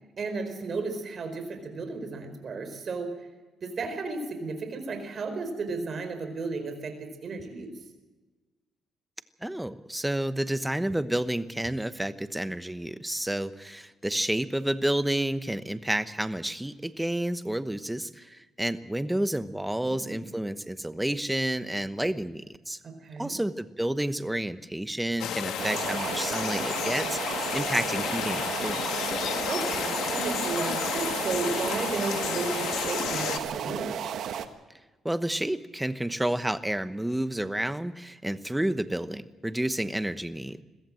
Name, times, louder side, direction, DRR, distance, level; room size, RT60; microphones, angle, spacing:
voice 1, 0.2-3.1 3.6-7.7 19.8-20.3 22.8-23.4 29.5-34.1, right 3 dB, 45° right, 7 dB, 4.6 m, -34 dB
voice 2, 9.4-22.8 23.2-28.8 35.0-40.6, right 1 dB, 5° right, 12 dB, 1.0 m, -30 dB
sound 1, 25.2-33.4, left 9 dB, 80° left, 1.5 m, -32 dB
sound 2, 25.6-34.5, right 8 dB, 75° right, 1.3 m, -33 dB
22.0 x 15.0 x 7.7 m, 1.2 s
cardioid pair, 90°, 0 cm